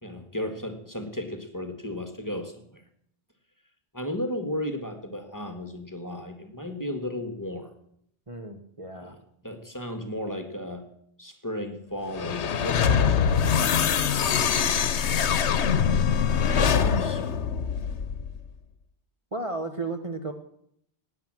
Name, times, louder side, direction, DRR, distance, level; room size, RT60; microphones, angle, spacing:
voice 1, 0.0-2.8 3.9-7.7 8.9-9.2 9.4-10.9 11.2-13.7 16.5-17.2, left 1 dB, 15° left, 7 dB, 1.7 m, -34 dB
voice 2, 8.3-9.2 19.3-20.3, right 2 dB, 30° right, 5 dB, 1.2 m, -33 dB
sound 1, 12.1-18.4, left 7 dB, 85° left, 1.1 m, -23 dB
17.0 x 9.4 x 7.6 m, 0.70 s
omnidirectional pair, 1.1 m